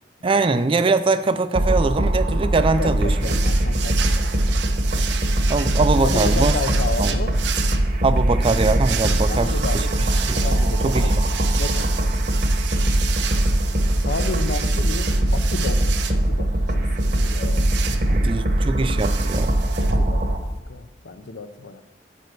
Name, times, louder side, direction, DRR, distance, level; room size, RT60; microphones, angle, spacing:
voice 1, 0.2-3.1 5.5-6.5 7.0-7.1 8.0-9.9 10.3-10.4 10.8-11.1 17.9-19.6, right 3 dB, 30° right, 0.4 m, -22 dB
sound 1, 1.5-20.4, right 1 dB, 55° right, 1.1 m, -21 dB
voice 2, 2.8-4.5 6.0-7.4 9.3-11.2 11.5-12.3 14.0-17.7 18.0-18.5 19.8-21.8, left 3 dB, 75° left, 0.6 m, -32 dB
sound 2, 3.2-20.6, right 9 dB, 75° right, 0.6 m, -32 dB
8.7 x 5.2 x 6.0 m
head